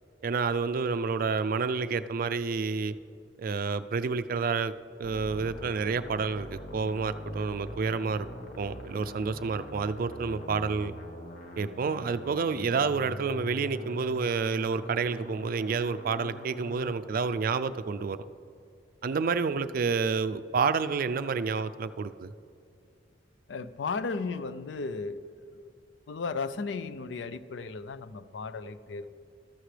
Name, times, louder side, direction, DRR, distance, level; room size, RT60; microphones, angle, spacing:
voice 1, 0.2-2.9 3.4-4.7 5.0-8.3 8.6-10.9 11.6-18.2 19.0-22.3, right 5 dB, 50° right, 12 dB, 0.4 m, -29 dB
sound 1, 5.0-16.9, equal, 50° left, 1.3 m, -43 dB
voice 2, 23.5-25.6 26.1-29.1, left 4 dB, 75° left, 14 dB, 0.5 m, -35 dB
14.0 x 13.0 x 3.3 m, 2.4 s
head